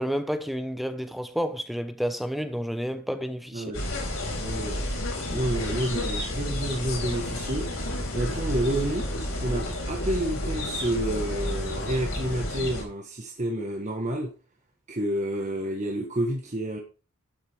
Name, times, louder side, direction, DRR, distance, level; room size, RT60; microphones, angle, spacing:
voice 1, 0.0-3.7, equal, ahead, 0.7 m, -30 dB
sound 1, 3.7-12.8, left 1 dB, 65° left, 4.3 m, -31 dB
voice 2, 4.4-7.7 8.1-9.1 9.4-14.3 14.9-16.8, right 1 dB, 30° right, 1.4 m, -29 dB
11.5 x 7.3 x 3.5 m
head